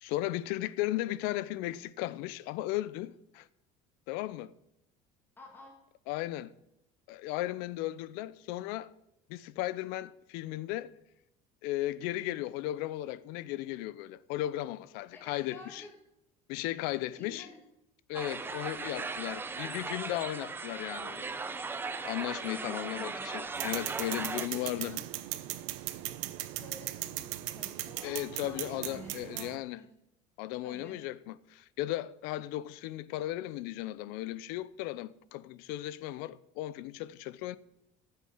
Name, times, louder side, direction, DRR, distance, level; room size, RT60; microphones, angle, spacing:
voice 1, 0.0-3.5 4.1-4.5 6.1-6.5 7.1-8.9 9.3-10.9 11.6-15.8 16.5-17.5 18.1-21.3 22.0-25.0 28.0-29.8 30.4-37.6, left 15 dB, 70° left, 0.7 m, -36 dB
voice 2, 5.4-5.7 15.1-16.0 17.2-17.6 22.5-23.3 24.4-25.0 26.5-29.9 30.6-31.0, left 2 dB, 10° left, 2.2 m, -51 dB
sound 1, 18.1-24.5, right 4 dB, 15° right, 0.7 m, -38 dB
sound 2, 23.6-29.6, right 16 dB, 90° right, 0.9 m, -38 dB
13.5 x 8.0 x 7.3 m
cardioid pair, 150°, 16 cm